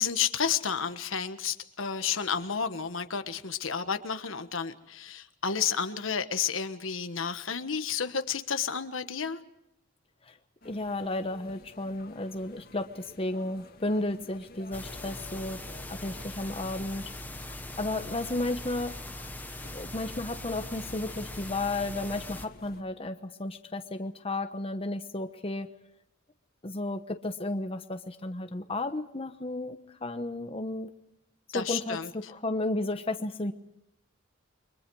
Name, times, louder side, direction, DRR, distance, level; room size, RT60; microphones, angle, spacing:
voice 1, 0.0-9.4 31.5-32.1, left 7 dB, 80° left, 9 dB, 1.4 m, -31 dB
sound 1, 10.6-22.8, left 2 dB, 50° left, 2.0 m, -53 dB
voice 2, 10.6-15.6 15.9-17.1 17.8-19.0 19.7-25.7 26.6-30.9 31.5-33.5, left 2 dB, 30° left, 8 dB, 1.0 m, -33 dB
sound 2, 14.7-22.5, left 1 dB, 10° left, 1.2 m, -41 dB
30.0 x 23.5 x 4.8 m, 0.80 s
head